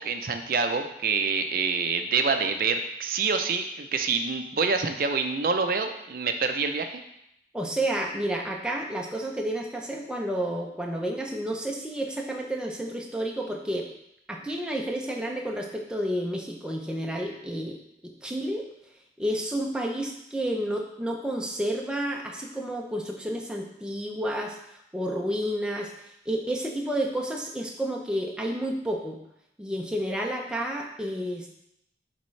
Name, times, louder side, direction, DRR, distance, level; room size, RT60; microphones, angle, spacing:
voice 1, 0.0-7.0, right 5 dB, 50° right, 7 dB, 0.5 m, -26 dB
voice 2, 7.5-13.9 14.3-17.8 18.0-18.6 19.2-24.6 24.9-25.9 26.3-29.2 29.6-31.5, right 1 dB, 5° right, 0 dB, 0.6 m, -30 dB
8.4 x 3.6 x 3.2 m, 0.79 s
head